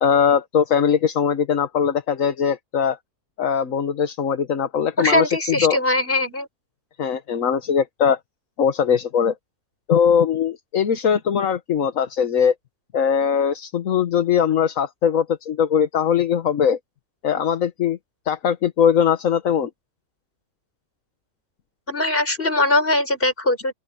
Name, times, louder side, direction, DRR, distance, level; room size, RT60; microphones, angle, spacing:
voice 1, 0.0-3.0 3.4-5.8 7.0-8.2 8.6-9.3 9.9-12.5 12.9-16.8 17.2-18.0 18.3-19.7, left 7 dB, 70° left, 1.5 m, -20 dB
voice 2, 5.0-6.5 21.9-23.7, left 1 dB, 40° left, 6.8 m, -21 dB
open air
omnidirectional pair, 1.5 m